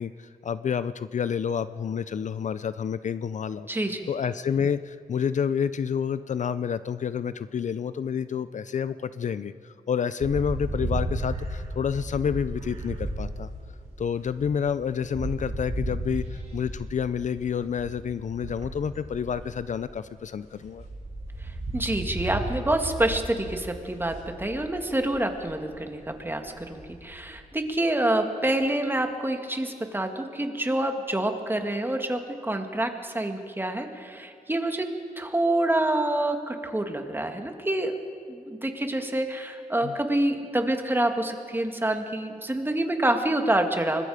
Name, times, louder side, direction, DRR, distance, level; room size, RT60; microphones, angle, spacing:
voice 1, 0.0-3.7 4.1-13.5 14.0-20.9 39.8-40.0, left 7 dB, 60° left, 14 dB, 0.6 m, -29 dB
voice 2, 3.7-4.1 21.7-34.9 35.2-38.0 38.3-44.1, right 1 dB, 15° right, 5 dB, 2.1 m, -27 dB
sound 1, 10.2-20.2 20.6-27.4, right 2 dB, 50° right, 5.0 m, -35 dB
25.0 x 21.0 x 5.1 m, 2.4 s
cardioid pair, 75°, 14 cm